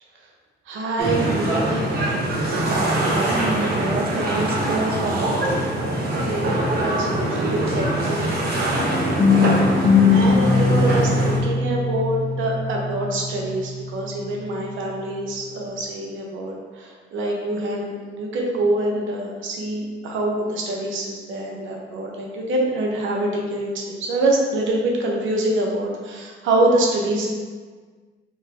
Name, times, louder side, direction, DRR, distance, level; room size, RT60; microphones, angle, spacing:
voice 1, 0.7-1.9 6.1-8.4 8.8-8.9 9.7-27.3, right 1 dB, 80° right, -1 dB, 0.8 m, -25 dB
sound 1, 1.0-11.4, right 1 dB, 50° right, 0.9 m, -23 dB
voice 2, 2.6-5.3, right 2 dB, 30° right, 1 dB, 0.4 m, -27 dB
sound 2, 8.8-14.6, left 4 dB, 30° left, 0.7 m, -21 dB
3.1 x 2.9 x 3.5 m, 1.5 s
cardioid pair, 90°, 20 cm